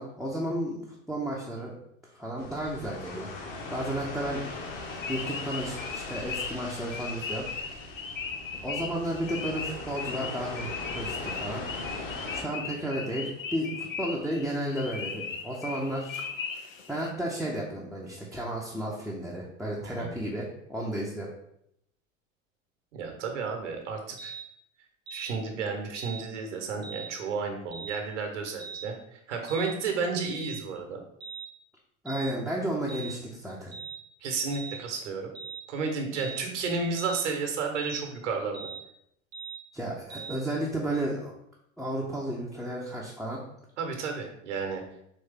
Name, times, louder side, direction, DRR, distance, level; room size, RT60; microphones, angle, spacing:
voice 1, 0.0-1.7 2.0-3.3 3.7-4.4 5.1-7.5 8.6-11.6 12.3-16.2 16.9-21.3 32.0-33.7 39.7-41.3 41.8-43.4, right 1 dB, ahead, -5 dB, 0.6 m, -33 dB
sound 1, 2.4-12.4, left 2 dB, 55° left, 1.3 m, -40 dB
sound 2, 4.3-17.1, left 5 dB, 85° left, 0.6 m, -38 dB
voice 2, 22.9-24.3 25.1-31.0 34.2-35.3 35.7-38.7 43.8-44.8, right 4 dB, 65° right, 4 dB, 1.1 m, -32 dB
sound 3, 24.2-24.5 25.1-25.3 25.9-26.2 26.8-27.1 27.7-28.0 28.6-28.9 29.5-29.8 30.3-30.6 31.2-31.5 32.1-32.3 32.9-33.2 33.7-34.0 34.5-34.8 35.3-35.6 36.2-36.4 37.0-37.3 37.7-38.0 38.5-38.8 39.3-39.6 40.1-40.4, right 6 dB, 50° right, 0.9 m, -40 dB
4.3 x 3.2 x 3.5 m, 0.75 s
figure-of-eight pair, 80°, 38 cm